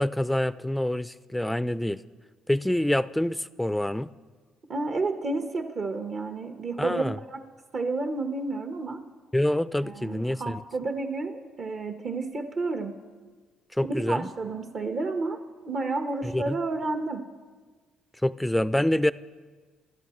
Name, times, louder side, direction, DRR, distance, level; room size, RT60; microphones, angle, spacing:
voice 1, 0.0-2.0 2.5-4.1 6.8-7.2 9.3-10.6 13.7-14.3 16.2-16.6 18.2-19.1, left 1 dB, 5° left, 16 dB, 0.5 m, -26 dB
voice 2, 4.7-7.4 7.7-9.0 9.8-13.0 13.8-17.2, right 3 dB, 50° right, 5 dB, 1.3 m, -31 dB
25.0 x 12.5 x 3.2 m, 1.4 s
supercardioid pair, 65°, 0 cm